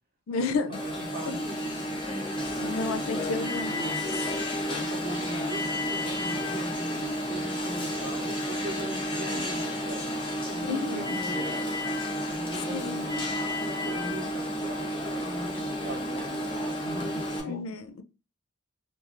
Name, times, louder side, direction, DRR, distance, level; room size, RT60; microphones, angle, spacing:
voice 1, 0.3-0.8 1.3-1.4 2.6-3.8 4.1-4.3 10.7-11.2 12.7-13.1 17.4-18.0, left 4 dB, 85° left, 0.4 m, -32 dB
Alarm, 0.7-17.4, equal, 25° left, 0.7 m, -31 dB
voice 2, 0.8-1.6 2.7-4.0 4.6-10.2 10.5-11.6 12.1-13.3 13.7-17.6, right 1 dB, 45° right, 0.9 m, -40 dB
3.0 x 2.3 x 2.4 m
head